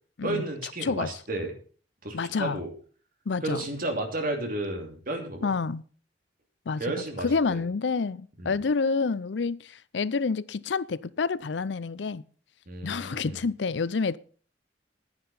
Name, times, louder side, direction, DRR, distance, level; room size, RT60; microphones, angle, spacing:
voice 1, 0.2-1.5 2.0-2.7 3.4-5.5 6.8-7.6 8.4-8.6 12.7-13.4, right 2 dB, 55° right, 2.8 m, -32 dB
voice 2, 2.1-2.6 3.3-3.6 5.4-5.8 6.7-6.9 7.2-12.2 12.8-14.2, left 4 dB, 75° left, 0.5 m, -28 dB
11.0 x 9.6 x 5.5 m
head